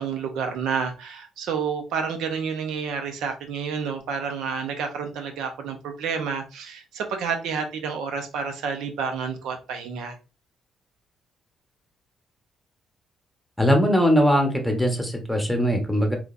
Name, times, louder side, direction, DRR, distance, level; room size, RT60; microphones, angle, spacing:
voice 1, 0.0-10.2, right 6 dB, 85° right, 0.8 m, -29 dB
voice 2, 13.6-16.2, equal, ahead, 1.0 m, -20 dB
3.7 x 3.0 x 2.5 m
cardioid pair, 90°, 0 cm